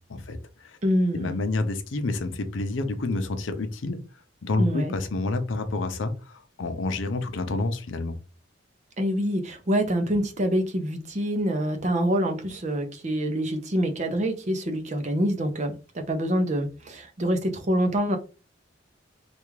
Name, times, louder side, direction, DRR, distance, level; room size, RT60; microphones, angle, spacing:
voice 1, 0.1-0.8 1.1-4.0 4.4-8.2, left 2 dB, 85° left, 0.6 m, -29 dB
voice 2, 0.8-1.4 4.6-4.9 9.0-18.2, equal, 35° right, 0.5 m, -26 dB
3.4 x 2.4 x 3.1 m
head